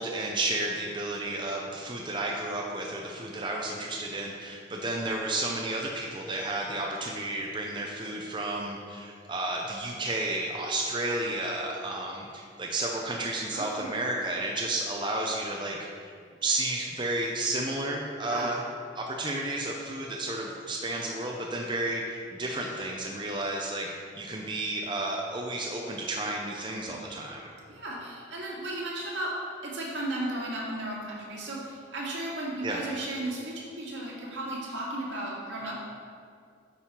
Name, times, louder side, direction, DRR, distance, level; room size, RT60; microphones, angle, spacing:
voice 1, 0.0-16.1 16.4-18.6 19.0-27.5 32.6-32.8, right 2 dB, 25° right, -1 dB, 0.6 m, -32 dB
voice 2, 13.5-14.0 18.2-18.5 26.9-27.0 27.7-29.3 29.6-35.9, right 1 dB, 75° right, -5 dB, 2.1 m, -35 dB
8.9 x 5.5 x 4.4 m, 2.3 s
head